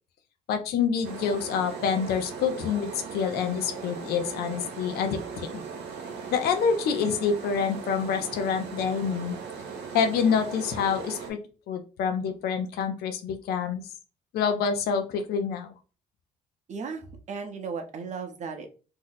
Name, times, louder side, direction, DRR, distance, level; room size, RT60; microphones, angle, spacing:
voice 1, 0.5-5.5 6.3-9.3 9.9-11.4 11.7-13.8 14.3-15.7, left 6 dB, 70° left, 6 dB, 0.6 m, -27 dB
sound 1, 1.0-11.3, right 5 dB, 75° right, 0.9 m, -38 dB
voice 2, 16.7-18.7, right 5 dB, 45° right, 5 dB, 0.7 m, -36 dB
2.7 x 2.0 x 3.9 m, 0.35 s
cardioid pair, 110°, 17 cm